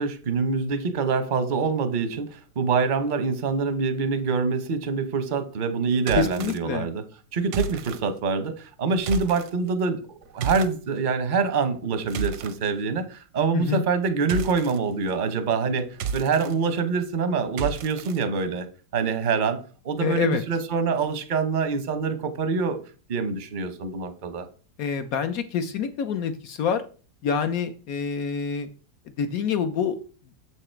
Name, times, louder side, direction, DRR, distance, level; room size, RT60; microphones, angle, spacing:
voice 1, 0.0-7.0 7.3-15.9 16.1-18.7 18.9-19.6 19.8-22.8 23.1-24.5, right 5 dB, 45° right, 8 dB, 0.7 m, -25 dB
sound 1, 6.0-6.6 7.5-8.0 9.0-9.5 10.4-10.7 11.8-12.5 14.3-14.8 15.9-16.5 17.6-18.2, right 6 dB, 80° right, 1.4 m, -31 dB
voice 2, 6.2-6.9 13.5-13.8 20.0-20.4 24.8-26.8 27.2-28.7 29.2-30.0, left 7 dB, 65° left, 9 dB, 0.9 m, -26 dB
7.0 x 4.8 x 4.4 m, 0.37 s
omnidirectional pair, 2.0 m